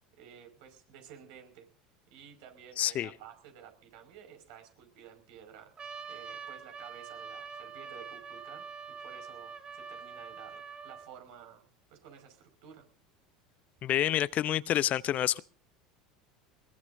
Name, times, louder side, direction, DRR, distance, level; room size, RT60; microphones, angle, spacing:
voice 1, 0.2-1.7 2.1-8.7 9.0-11.6 11.9-12.9, right 8 dB, 65° right, 5.3 m, -53 dB
voice 2, 2.8-3.1 13.8-15.4, left 12 dB, 45° left, 0.7 m, -28 dB
Trumpet, 5.8-11.1, right 5 dB, 30° right, 2.9 m, -44 dB
22.0 x 21.5 x 2.7 m
hypercardioid pair, 75°, 4 cm